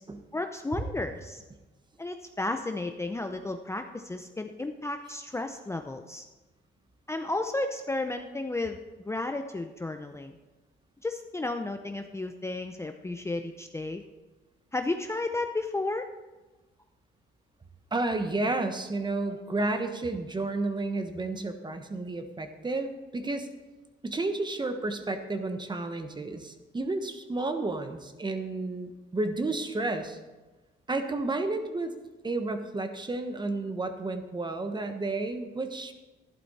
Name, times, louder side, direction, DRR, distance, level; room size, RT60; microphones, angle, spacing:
voice 1, 0.3-1.4 2.0-6.3 7.1-10.4 11.0-14.0 14.7-16.1, left 2 dB, 15° left, 6 dB, 0.6 m, -33 dB
voice 2, 17.9-23.5 24.0-30.2 30.9-31.9 32.2-35.9, right 2 dB, 20° right, 7 dB, 1.2 m, -31 dB
12.0 x 11.0 x 4.2 m, 1.2 s
cardioid pair, 90°, 20 cm